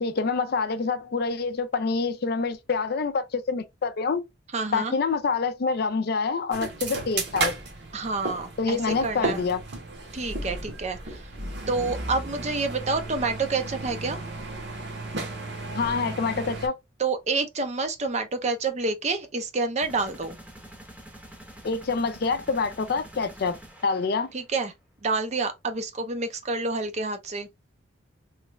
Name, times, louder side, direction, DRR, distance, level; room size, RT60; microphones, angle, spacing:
voice 1, 0.0-4.2 4.7-7.5 8.6-9.6 15.8-16.7 21.6-23.5 23.8-24.3, left 4 dB, 50° left, 0.4 m, -26 dB
voice 2, 4.5-4.9 7.9-9.4 10.1-11.2 11.7-14.2 17.0-20.4 24.3-24.7 25.0-27.5, right 3 dB, 35° right, 0.5 m, -28 dB
sound 1, 6.5-16.7, right 2 dB, 60° right, 1.0 m, -34 dB
sound 2, 19.8-24.6, right 1 dB, 5° right, 0.8 m, -46 dB
3.1 x 2.3 x 3.1 m
head